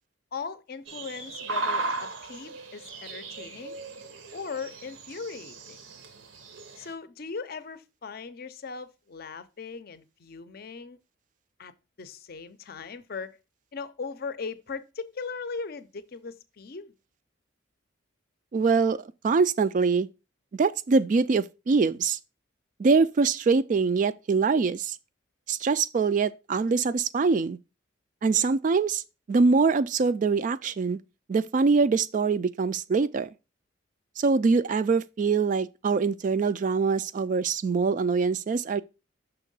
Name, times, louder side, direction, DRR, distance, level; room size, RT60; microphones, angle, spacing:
voice 1, 0.3-3.8 4.3-5.8 6.8-11.0 11.6-11.7 12.0-13.4 13.7-16.9, left 5 dB, 50° left, 0.5 m, -39 dB
sound 1, 0.9-6.9, right 3 dB, 75° right, 0.9 m, -36 dB
voice 2, 18.5-20.1 20.5-22.2 22.8-25.0 25.5-27.6 28.2-29.0 29.3-31.0 31.3-33.3 34.2-38.8, right 4 dB, 40° right, 0.3 m, -24 dB
5.8 x 3.6 x 5.3 m
head